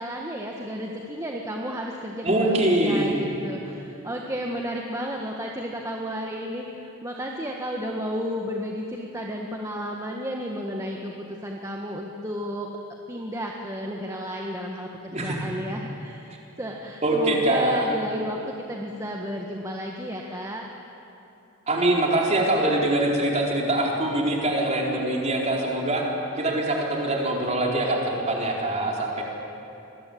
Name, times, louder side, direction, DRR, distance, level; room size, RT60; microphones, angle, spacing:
voice 1, 0.0-12.7 13.1-20.7, equal, 15° right, 0 dB, 1.5 m, -33 dB
voice 2, 2.2-3.3 15.1-15.4 17.0-17.9 21.7-26.0 26.4-29.2, right 1 dB, 30° right, -2 dB, 4.3 m, -23 dB
26.0 x 21.0 x 8.7 m, 2.9 s
head